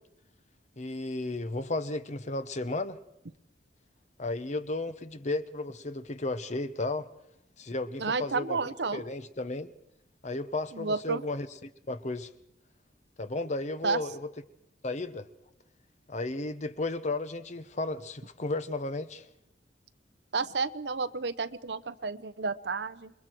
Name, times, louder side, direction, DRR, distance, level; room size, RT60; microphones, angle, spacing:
voice 1, 0.8-3.0 4.2-7.1 7.6-9.7 10.2-12.3 13.2-14.3 14.8-15.3 16.1-19.3, left 2 dB, 40° left, 0.9 m, -34 dB
voice 2, 8.0-9.0 10.7-11.2 13.8-14.0 20.3-23.1, right 4 dB, 70° right, 0.8 m, -31 dB
28.5 x 22.0 x 4.6 m
head